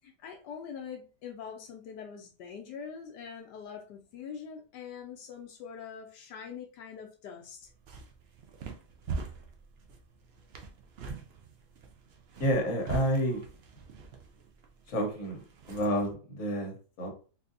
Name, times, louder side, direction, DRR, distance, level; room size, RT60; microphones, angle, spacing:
voice 1, 0.0-7.7, left 7 dB, 85° left, 1.2 m, -44 dB
sound 1, 7.6-16.1, right 4 dB, 70° right, 0.5 m, -43 dB
voice 2, 12.4-13.4 14.9-17.2, equal, 55° left, 1.4 m, -30 dB
4.1 x 2.6 x 2.5 m
omnidirectional pair, 1.8 m